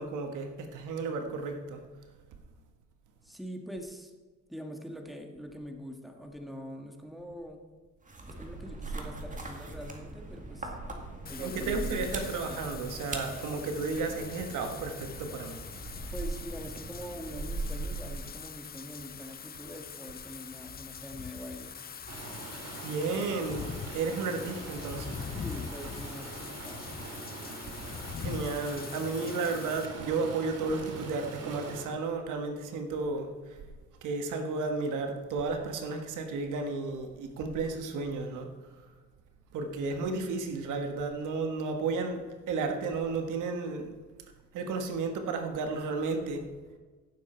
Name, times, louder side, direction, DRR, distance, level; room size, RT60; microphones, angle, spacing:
voice 1, 0.0-1.8 11.4-15.6 22.5-25.2 27.9-33.3 34.0-38.5 39.5-43.9 44.5-46.5, right 4 dB, 85° right, 5 dB, 1.5 m, -33 dB
voice 2, 3.2-4.1 4.5-7.6 8.3-10.8 11.3-12.6 16.1-21.9 25.4-26.9, equal, ahead, 3 dB, 1.7 m, -43 dB
sound 1, 8.0-18.4, right 2 dB, 25° right, 2.1 m, -40 dB
Wind / Rain, 11.3-29.9, left 7 dB, 30° left, 0.5 m, -43 dB
Stream, 22.1-31.8, right 3 dB, 55° right, 2.4 m, -43 dB
15.5 x 7.1 x 4.4 m, 1.3 s
cardioid pair, 90°, 30 cm